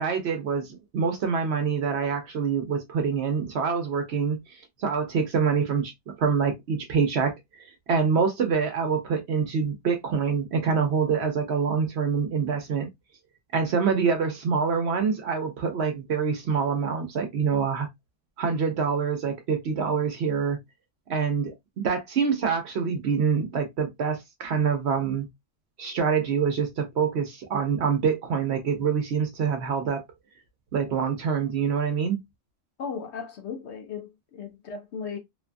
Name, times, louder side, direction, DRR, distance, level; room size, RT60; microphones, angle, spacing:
voice 1, 0.0-12.9 13.5-17.9 18.4-20.6 21.1-25.3 25.8-30.0 30.7-32.2, right 6 dB, 60° right, 0.9 m, -26 dB
voice 2, 32.8-35.2, left 6 dB, 65° left, 0.8 m, -36 dB
2.6 x 2.3 x 2.5 m
omnidirectional pair, 1.4 m